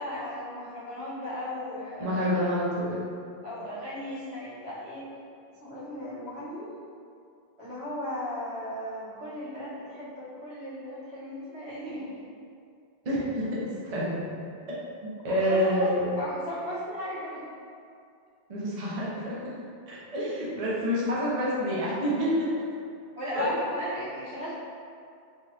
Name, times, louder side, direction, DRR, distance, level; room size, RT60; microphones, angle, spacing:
voice 1, 0.0-2.3 3.4-5.1 5.6-6.7 7.6-12.2 15.4-17.4 23.2-24.5, left 1 dB, 80° right, -11 dB, 1.4 m, -36 dB
voice 2, 2.0-3.0 13.0-14.2 15.0-16.2 18.5-19.5 19.9-22.5 23.3-23.5, equal, 40° right, -7 dB, 0.6 m, -28 dB
3.4 x 2.7 x 2.3 m, 2.4 s
omnidirectional pair, 1.1 m